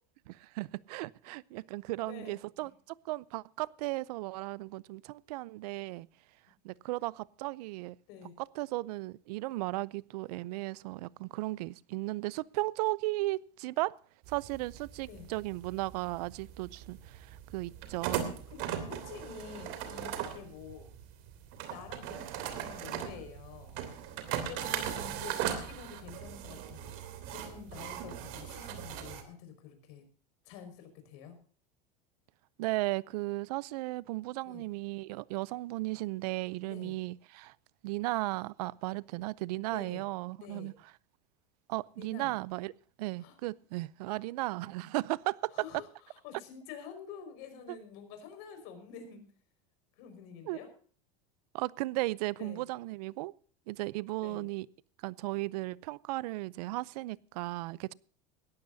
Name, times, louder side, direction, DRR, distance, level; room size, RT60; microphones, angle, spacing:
voice 1, 0.3-2.7 3.0-6.1 6.6-8.0 8.4-13.9 14.3-18.4 32.6-37.5 37.8-40.7 41.7-42.7 43.0-45.5 50.5-50.6 51.5-53.3 53.7-54.7 55.0-57.9, right 20 dB, 80° right, 0.6 m, -35 dB
voice 2, 2.0-2.7 8.1-8.3 15.0-15.3 18.5-20.9 21.7-23.8 24.4-30.0 30.4-31.4 34.4-34.7 36.6-37.0 39.7-40.0 40.4-40.7 42.0-42.4 43.2-43.4 44.1-44.2 45.5-49.2 50.0-50.7 52.3-52.7 54.2-54.5, left 7 dB, 60° left, 5.3 m, -48 dB
sound 1, 14.3-29.2, right 10 dB, 60° right, 3.0 m, -39 dB
19.5 x 14.5 x 2.7 m
supercardioid pair, 150°, 20 cm